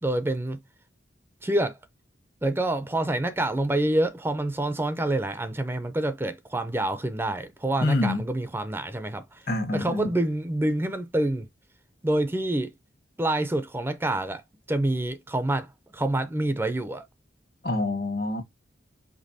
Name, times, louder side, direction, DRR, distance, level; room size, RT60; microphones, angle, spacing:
voice 1, 0.0-0.6 1.4-1.8 2.4-9.4 9.7-11.5 12.0-12.7 13.2-14.4 14.7-17.0, right 1 dB, 10° right, 0.5 m, -27 dB
voice 2, 7.8-8.2 9.5-10.1 17.6-18.4, left 2 dB, 55° left, 1.2 m, -26 dB
5.2 x 3.3 x 2.7 m
head